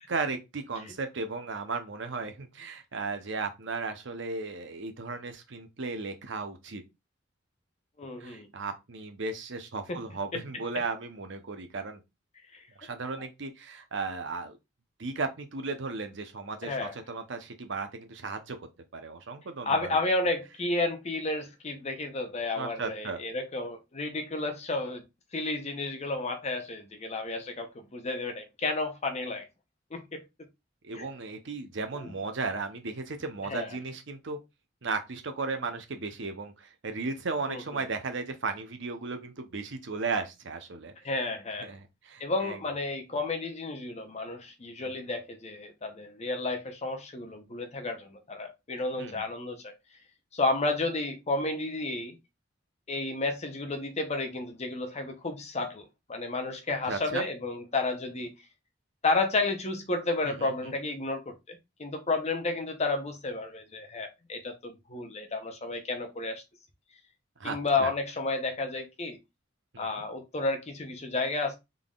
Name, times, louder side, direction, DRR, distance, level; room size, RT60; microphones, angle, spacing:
voice 1, 0.1-6.8 8.2-12.0 12.8-14.6 15.0-20.0 22.6-23.2 30.8-34.4 34.8-40.9 41.6-42.6 44.8-44.9 48.7-49.2 56.9-57.2 60.2-60.7 67.4-67.9 69.7-70.0, right 4 dB, 65° right, 0.8 m, -35 dB
voice 2, 8.0-8.5 9.9-10.0 10.3-10.4 16.6-16.9 19.7-25.1 25.3-29.5 29.9-30.2 30.9-31.1 31.9-32.1 33.4-33.8 37.5-37.8 41.0-41.7 42.2-49.7 50.3-52.2 52.9-58.3 59.0-66.4 67.4-69.2 69.8-71.5, left 3 dB, 35° left, 0.8 m, -32 dB
3.8 x 3.5 x 2.4 m
head